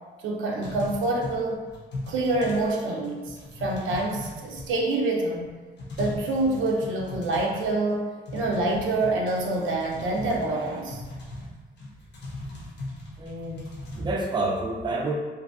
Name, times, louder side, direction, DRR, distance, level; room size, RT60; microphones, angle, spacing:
voice 1, 0.2-1.6 2.1-5.5 6.0-11.0, right 2 dB, 90° right, 0 dB, 0.5 m, -26 dB
Keyboard Typing (Fast), 0.6-2.8 3.0-5.0 5.4-5.5 5.8-7.9 8.3-14.0, left 1 dB, 60° left, 0.7 m, -39 dB
voice 2, 13.2-13.6 14.0-15.1, right 2 dB, 25° right, 0 dB, 0.4 m, -28 dB
2.6 x 2.2 x 2.5 m, 1.4 s
cardioid pair, 95°, 20 cm